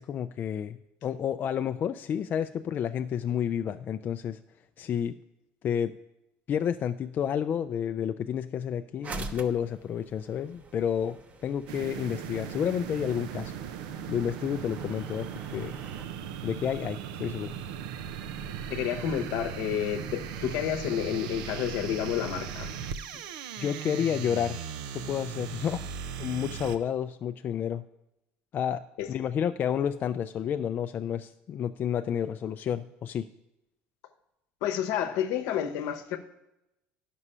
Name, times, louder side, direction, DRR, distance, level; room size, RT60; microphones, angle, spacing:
voice 1, 0.0-4.4 4.8-5.2 5.6-5.9 6.5-13.5 14.1-15.7 16.4-17.5 23.6-24.6 24.9-25.8 26.2-27.8 28.5-28.8 29.1-33.3, left 9 dB, 40° left, 0.3 m, -30 dB
sound 1, 9.0-16.1, right 3 dB, 35° right, 0.8 m, -45 dB
sound 2, 11.7-26.8, right 8 dB, 85° right, 0.5 m, -38 dB
voice 2, 18.7-22.7 29.0-29.1 34.6-36.2, left 10 dB, 75° left, 0.9 m, -30 dB
9.7 x 6.1 x 5.5 m
supercardioid pair, 100°, 5 cm